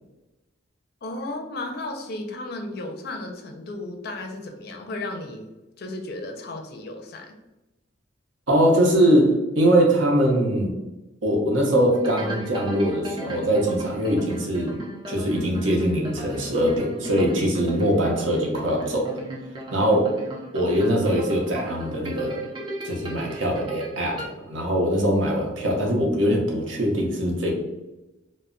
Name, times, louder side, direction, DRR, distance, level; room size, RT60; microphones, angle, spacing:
voice 1, 1.0-5.5 5.8-7.3, left 2 dB, 50° left, 4 dB, 0.4 m, -34 dB
voice 2, 8.5-10.7 11.2-14.8 15.1-19.2 19.7-20.1 20.5-22.5 22.8-27.5, equal, 75° right, 0 dB, 0.7 m, -22 dB
sound 1, 11.9-24.3, right 1 dB, 25° right, 0.4 m, -36 dB
2.1 x 2.0 x 3.6 m, 1.0 s
head